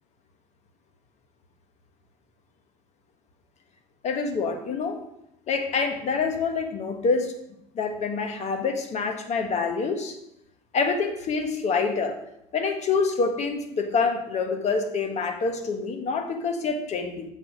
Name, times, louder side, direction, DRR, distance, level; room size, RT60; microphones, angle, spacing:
voice 1, 4.0-5.0 5.5-7.4 7.7-10.2 10.7-12.2 12.5-17.3, left 4 dB, 55° left, 7 dB, 1.4 m, -26 dB
7.6 x 4.9 x 6.0 m, 0.79 s
supercardioid pair, 70°, 14 cm